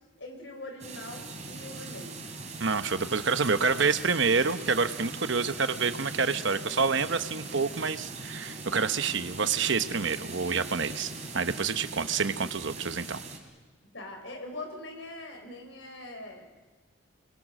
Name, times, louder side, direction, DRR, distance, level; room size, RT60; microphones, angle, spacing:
voice 1, 0.2-2.2 13.8-16.5, left 2 dB, 65° left, 3 dB, 5.5 m, -42 dB
sound 1, 0.8-13.4, right 3 dB, 35° right, 3.5 m, -40 dB
voice 2, 2.6-13.2, right 5 dB, 60° right, 10 dB, 1.0 m, -28 dB
30.0 x 22.5 x 6.4 m, 1.3 s
head